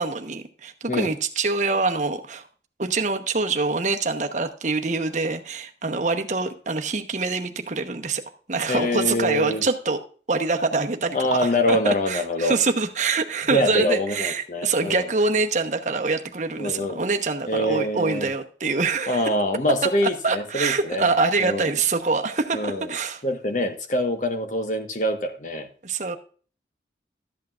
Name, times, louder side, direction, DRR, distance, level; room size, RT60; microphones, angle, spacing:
voice 1, 0.0-2.4 2.8-8.2 8.5-10.0 10.3-19.3 20.2-23.2 25.8-26.2, right 3 dB, 40° right, 1.0 m, -25 dB
voice 2, 8.7-9.6 11.1-12.6 13.5-15.1 16.6-17.0 17.5-18.3 19.1-21.1 21.4-21.8 22.5-23.0 23.2-25.7, left 1 dB, 45° left, 1.2 m, -25 dB
13.0 x 8.4 x 2.5 m
head